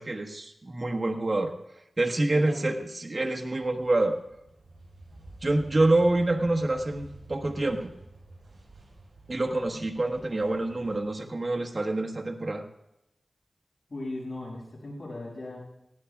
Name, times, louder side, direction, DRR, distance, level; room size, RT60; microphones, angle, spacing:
voice 1, 0.0-1.5 2.0-4.2 5.4-7.9 9.3-12.6, right 2 dB, 45° right, 2 dB, 1.4 m, -26 dB
voice 2, 2.3-2.7 13.9-15.6, left 2 dB, 60° left, -4 dB, 6.4 m, -38 dB
sound 1, 3.6-11.1, right 2 dB, 60° right, 6.5 m, -50 dB
19.5 x 16.0 x 2.4 m, 0.86 s
wide cardioid pair, 60°, 0 cm